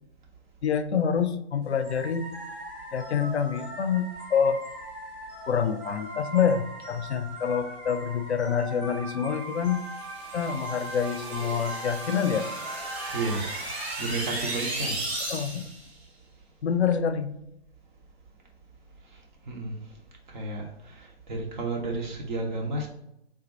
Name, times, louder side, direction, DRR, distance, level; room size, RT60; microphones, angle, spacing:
voice 1, 0.6-2.3 2.9-4.6 5.5-9.8 10.3-12.5 15.3-15.7 16.6-17.3, left 7 dB, 75° left, 11 dB, 0.5 m, -26 dB
sound 1, 1.8-13.4, right 1 dB, 5° right, 0.3 m, -39 dB
sound 2, 9.9-15.9, right 2 dB, 70° right, 1.3 m, -35 dB
voice 2, 13.1-13.7 14.0-15.1 19.5-19.8 20.3-22.9, right 2 dB, 45° right, 0 dB, 0.9 m, -32 dB
3.6 x 2.6 x 4.1 m, 0.81 s
figure-of-eight pair, 130°, 33 cm